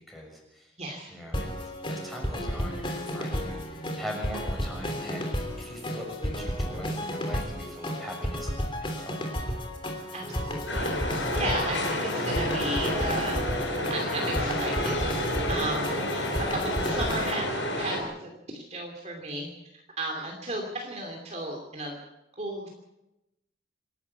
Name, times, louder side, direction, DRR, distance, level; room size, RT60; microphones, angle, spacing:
voice 1, 0.0-0.7 1.1-1.5 1.9-9.3, equal, ahead, -1 dB, 6.6 m, -41 dB
voice 2, 0.8-1.2 10.1-15.1 15.5-19.5 20.0-22.0 22.4-22.7, right 2 dB, 35° right, 1 dB, 2.9 m, -35 dB
sound 1, 1.3-17.3, equal, 25° left, 3.2 m, -33 dB
sound 2, 10.7-18.0, left 1 dB, 75° left, 7.7 m, -30 dB
27.0 x 11.5 x 8.4 m, 0.95 s
head